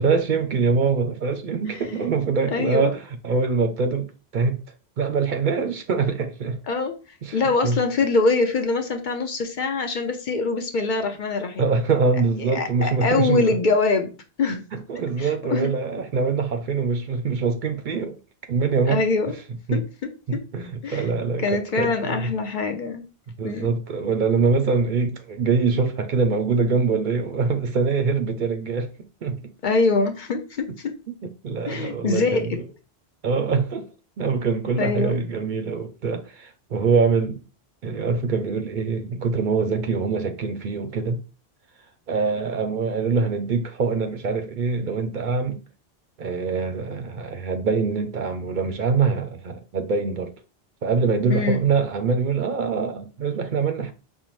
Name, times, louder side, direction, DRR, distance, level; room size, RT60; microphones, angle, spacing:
voice 1, 0.0-4.6 5.0-6.6 7.2-7.8 11.6-13.5 14.7-18.2 18.5-19.0 19.7-19.8 20.3-22.3 23.4-28.9 29.2-29.4 31.4-32.7 33.2-33.9 34.2-37.4 37.8-41.2 42.1-45.6 46.2-50.3 50.8-53.9, right 4 dB, 60° right, 0.6 m, -24 dB
voice 2, 2.5-2.9 6.7-6.9 7.3-11.7 12.4-14.1 14.4-14.6 15.2-15.7 18.9-19.3 19.7-19.8 20.8-21.1 21.4-23.0 23.4-23.7 29.6-30.9 31.7-32.6 34.8-35.2 51.3-51.6, left 3 dB, 55° left, 0.6 m, -23 dB
5.4 x 2.0 x 3.0 m
omnidirectional pair, 1.1 m